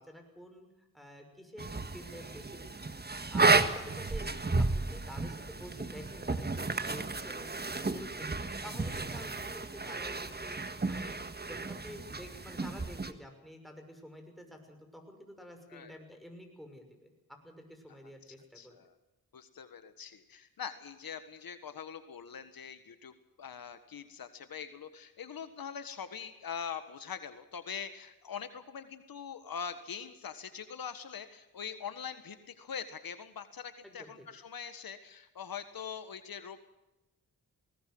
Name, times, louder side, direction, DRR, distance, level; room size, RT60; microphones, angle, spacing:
voice 1, 0.0-2.7 3.3-6.6 6.9-8.3 8.6-10.6 10.9-11.2 11.4-18.8 33.8-34.3, equal, ahead, 4 dB, 6.2 m, -49 dB
sound 1, 1.6-13.1, right 3 dB, 25° right, 1.6 m, -32 dB
voice 2, 18.3-18.9 19.3-36.6, left 7 dB, 75° left, 10 dB, 1.6 m, -43 dB
19.5 x 19.5 x 7.8 m, 0.97 s
cardioid pair, 70°, 36 cm